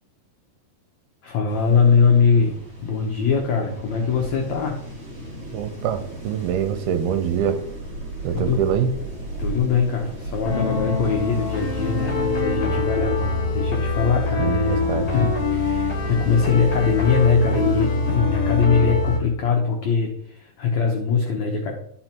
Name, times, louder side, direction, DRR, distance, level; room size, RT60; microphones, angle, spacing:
voice 1, 1.2-4.8 8.3-8.6 9.4-21.7, left 5 dB, 85° left, 1 dB, 1.5 m, -22 dB
sound 1, 1.5-18.2, right 2 dB, 30° right, 1.7 m, -36 dB
voice 2, 5.5-7.6 8.2-8.9 14.4-15.1, right 8 dB, 80° right, 9 dB, 2.4 m, -24 dB
sound 2, 10.4-19.2, left 3 dB, 45° left, 2.2 m, -24 dB
13.0 x 4.7 x 4.5 m, 0.70 s
omnidirectional pair, 4.9 m